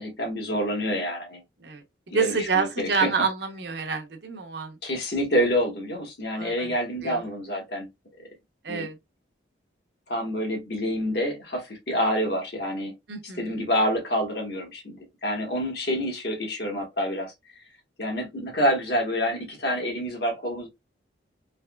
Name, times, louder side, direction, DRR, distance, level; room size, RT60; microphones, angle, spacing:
voice 1, 0.0-1.4 2.1-3.1 4.8-7.9 8.7-8.9 10.1-12.9 13.4-17.3 18.0-20.7, equal, 60° left, 1.2 m, -27 dB
voice 2, 2.1-4.8 6.3-6.7 7.0-7.2 8.6-9.0 13.1-13.7, right 5 dB, 65° right, 0.8 m, -28 dB
3.3 x 2.9 x 2.2 m
head